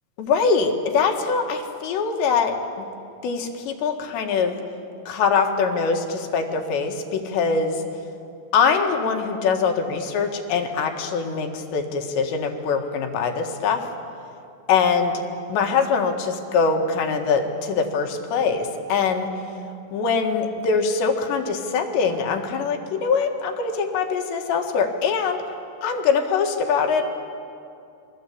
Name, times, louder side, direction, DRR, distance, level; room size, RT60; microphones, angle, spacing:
voice 1, 0.2-2.9 3.2-4.5 5.1-7.8 8.5-13.9 14.7-15.2 15.5-19.3 19.9-25.4 25.8-27.0, left 5 dB, 80° left, 4 dB, 4.1 m, -23 dB
28.5 x 22.0 x 8.6 m, 2.6 s
omnidirectional pair, 5.0 m